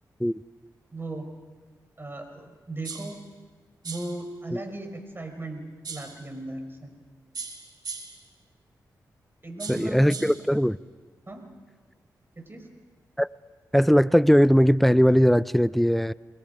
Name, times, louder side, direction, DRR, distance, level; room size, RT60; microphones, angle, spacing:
voice 1, 0.9-1.3 2.0-3.2 3.8-6.9 9.4-10.2 11.3-11.5 12.4-12.7, right 2 dB, 30° right, 5.1 m, -37 dB
sound 1, 2.8-3.2 3.8-4.2 5.8-6.2 7.3-8.2 9.6-10.4, right 4 dB, 60° right, 2.8 m, -38 dB
voice 2, 9.7-10.8 13.2-13.3 13.7-16.1, equal, ahead, 0.6 m, -19 dB
28.0 x 21.5 x 5.3 m
supercardioid pair, 45°, 8 cm